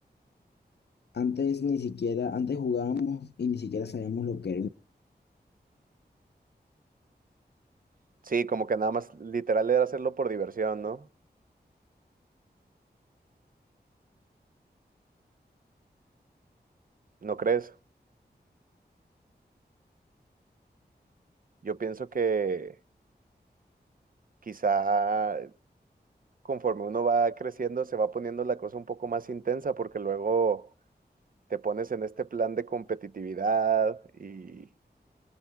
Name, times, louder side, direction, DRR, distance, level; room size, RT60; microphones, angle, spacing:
voice 1, 1.1-4.7, left 6 dB, 75° left, 0.7 m, -30 dB
voice 2, 8.3-11.0 17.2-17.7 21.6-22.7 24.5-25.5 26.5-30.7 31.5-34.7, right 5 dB, 55° right, 0.7 m, -29 dB
28.5 x 21.5 x 2.3 m
wide cardioid pair, 80°, 17 cm